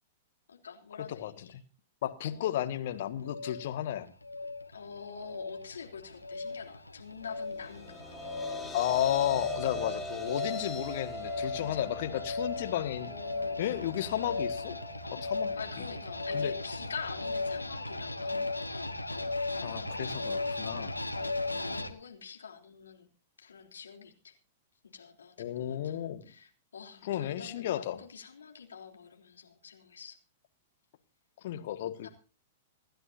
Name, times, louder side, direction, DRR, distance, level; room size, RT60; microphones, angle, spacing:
voice 1, 0.5-1.5 2.2-2.6 4.7-8.0 11.6-11.8 12.9-13.7 15.6-19.1 21.2-23.1 23.4-24.3 24.9-30.2 32.0-32.1, left 6 dB, 70° left, 3 dB, 3.4 m, -46 dB
voice 2, 1.1-1.5 2.0-4.1 8.7-13.1 13.6-14.8 15.1-15.5 16.3-16.5 19.6-20.9 25.4-26.2 27.0-28.0 31.4-32.1, left 12 dB, 50° left, 8 dB, 1.7 m, -33 dB
sound 1, 2.9-21.9, left 2 dB, 85° left, 1.4 m, -37 dB
sound 2, 7.4-19.7, left 1 dB, 10° left, 1.8 m, -43 dB
27.0 x 11.5 x 2.7 m, 0.35 s
figure-of-eight pair, 105°, 0 cm